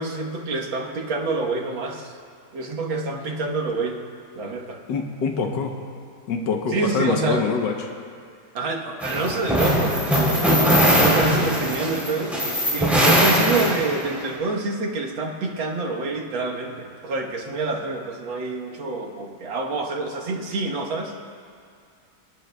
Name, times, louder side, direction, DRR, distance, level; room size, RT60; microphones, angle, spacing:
voice 1, 0.0-2.1 2.5-4.1 4.4-4.8 6.7-7.5 8.5-12.4 12.7-21.2, right 3 dB, 80° right, 0 dB, 2.0 m, -27 dB
voice 2, 4.9-5.8 6.3-7.8, left 5 dB, 70° left, 3 dB, 1.5 m, -24 dB
sound 1, 9.0-14.2, equal, ahead, 3.1 m, -20 dB
26.5 x 10.5 x 2.2 m, 2.2 s
omnidirectional pair, 2.1 m